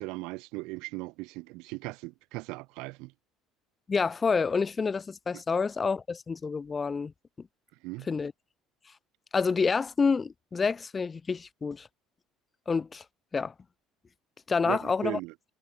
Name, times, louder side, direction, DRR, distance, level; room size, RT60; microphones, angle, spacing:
voice 1, 0.0-3.1 5.3-5.4 7.8-8.1 14.6-15.3, right 24 dB, 75° right, 2.4 m, -38 dB
voice 2, 3.9-7.1 8.1-8.3 9.3-11.9 12.7-13.0 13.3-13.5 14.5-15.2, left 5 dB, 20° left, 0.7 m, -28 dB
cardioid pair, 155°, 0 cm